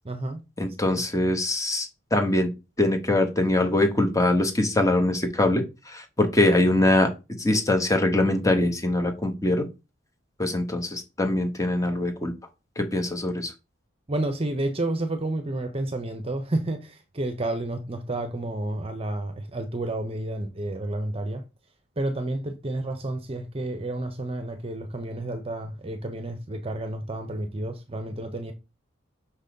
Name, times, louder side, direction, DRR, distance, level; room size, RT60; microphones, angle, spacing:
voice 1, 0.0-0.4 0.9-1.0 14.1-21.4 22.0-28.5, right 1 dB, 30° right, 0.8 m, -30 dB
voice 2, 0.6-2.5 2.8-7.1 7.4-9.6 10.4-12.3 12.8-13.5, left 1 dB, 15° left, 1.4 m, -23 dB
6.0 x 4.1 x 5.2 m
head